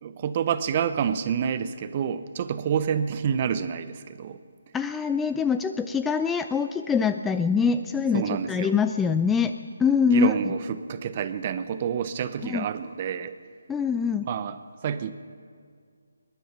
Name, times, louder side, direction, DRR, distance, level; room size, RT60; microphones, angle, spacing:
voice 1, 0.0-4.4 8.1-8.7 10.1-13.3 14.3-14.6 14.8-15.1, right 8 dB, 35° right, 12 dB, 0.7 m, -28 dB
voice 2, 4.7-9.5 9.8-10.5 12.4-12.7 13.7-14.3, left 5 dB, 5° left, 9 dB, 0.3 m, -24 dB
21.0 x 10.5 x 5.9 m, 2.1 s
figure-of-eight pair, 155°, 0 cm